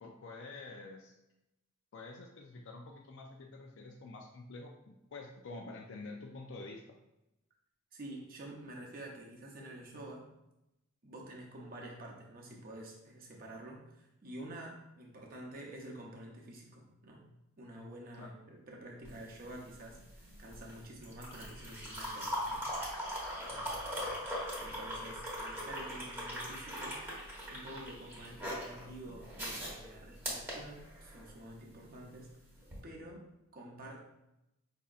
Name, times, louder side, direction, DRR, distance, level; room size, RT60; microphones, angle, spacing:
voice 1, 0.0-1.1 1.9-6.8 18.2-18.3, left 3 dB, 60° left, 0 dB, 0.4 m, -48 dB
voice 2, 7.9-10.3 11.0-17.3 17.6-22.6 23.4-24.3 24.6-27.0 27.5-32.4 32.8-33.3 33.5-34.0, right 1 dB, 40° right, -1 dB, 0.7 m, -49 dB
sound 1, 19.0-31.4 32.6-32.8, equal, 10° right, 0.9 m, -40 dB
4.9 x 2.7 x 2.4 m, 0.91 s
head